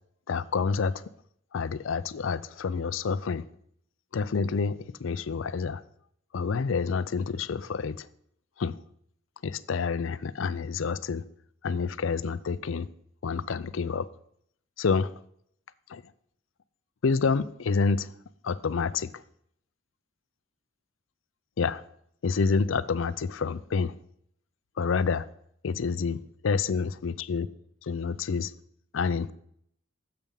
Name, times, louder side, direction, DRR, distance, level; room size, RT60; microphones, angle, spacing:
voice 1, 0.3-1.1 1.5-3.4 4.1-5.8 6.3-8.1 8.6-8.8 9.4-11.2 11.6-12.9 13.2-14.1 14.8-15.1 15.9-16.0 17.0-18.1 18.4-19.2 21.6-21.8 22.2-23.9 24.8-25.3 25.6-27.5 27.8-28.5 28.9-29.3, left 5 dB, 75° left, 0.5 m, -28 dB
7.1 x 6.9 x 7.4 m
head